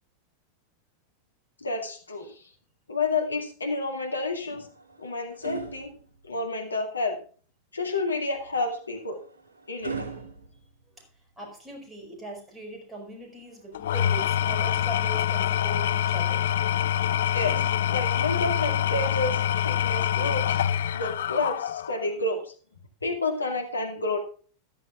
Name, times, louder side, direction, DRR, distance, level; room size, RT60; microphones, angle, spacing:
voice 1, 1.6-2.4 2.9-4.7 5.0-5.9 6.2-7.2 7.7-9.2 9.7-10.1 17.3-19.4 19.7-20.6 20.9-22.5 23.0-24.2, left 3 dB, 75° left, 4 dB, 2.1 m, -30 dB
sound 1, 4.3-6.8 8.3-11.5 13.3-14.5 16.4-18.3 19.5-19.7, right 5 dB, 70° right, 2.4 m, -43 dB
voice 2, 11.4-16.5, right 1 dB, 10° right, 2 dB, 5.0 m, -40 dB
Engine / Tools, 13.7-22.1, left 10 dB, 60° left, 0.4 m, -25 dB
14.0 x 13.0 x 2.4 m, 0.41 s
figure-of-eight pair, 90°, 0 cm